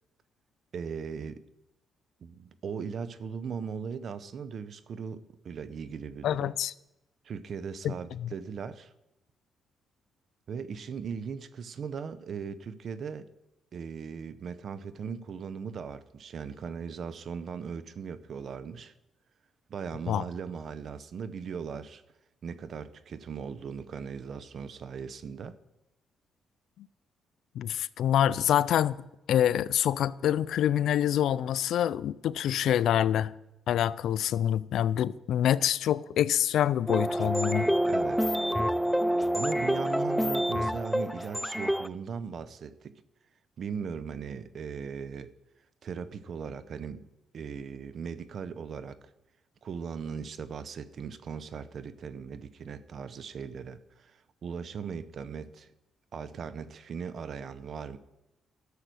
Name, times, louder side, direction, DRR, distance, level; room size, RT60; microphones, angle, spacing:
voice 1, 0.7-1.4 2.2-6.5 7.2-8.9 10.5-13.3 13.7-18.9 19.7-22.0 22.4-25.6 37.9-38.4 39.3-43.0 43.6-45.3 45.8-47.1 47.3-49.0 49.6-55.7 56.1-58.0, right 6 dB, 55° right, 0.7 m, -38 dB
voice 2, 6.2-6.7 7.8-7.9 8.2-8.3 20.1-20.2 27.6-29.0 29.3-33.3 33.7-37.7, left 10 dB, 75° left, 0.3 m, -26 dB
sound 1, 36.9-41.9, equal, 5° left, 0.3 m, -27 dB
13.0 x 6.7 x 6.3 m
cardioid pair, 90°, 0 cm